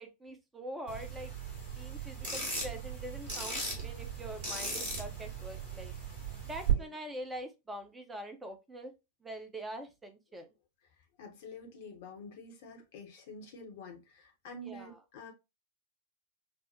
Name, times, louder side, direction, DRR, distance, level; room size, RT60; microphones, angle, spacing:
voice 1, 0.0-1.3 1.8-5.9 6.5-8.9 9.2-10.5 14.6-15.0, right 1 dB, 10° right, 0.8 m, -44 dB
sound 1, 0.9-6.7, right 4 dB, 45° right, 2.3 m, -38 dB
voice 2, 11.2-15.3, left 2 dB, 50° left, 0.9 m, -48 dB
5.5 x 2.1 x 2.7 m
figure-of-eight pair, 90°, 0 cm